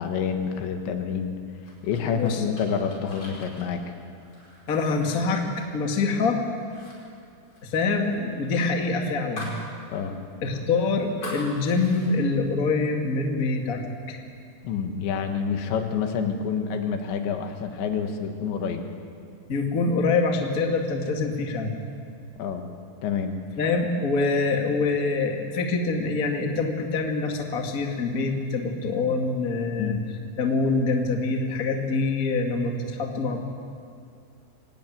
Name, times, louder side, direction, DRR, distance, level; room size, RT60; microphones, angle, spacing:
voice 1, 0.0-1.4 1.8-3.9 9.9-10.2 14.6-18.8 22.4-22.7 23.0-23.4 29.8-30.0, left 6 dB, 75° left, 5 dB, 3.8 m, -28 dB
sound 1, 1.6-6.3 6.6-7.0 7.2-9.7 10.0-10.1 10.5-12.1, left 1 dB, 25° left, 5.4 m, -43 dB
voice 2, 2.1-2.4 4.7-5.4 5.7-6.4 7.6-9.6 10.4-14.2 19.5-21.9 23.6-30.0 30.4-33.4, left 3 dB, 55° left, 2 dB, 0.9 m, -25 dB
25.0 x 17.0 x 9.4 m, 2.3 s
omnidirectional pair, 5.4 m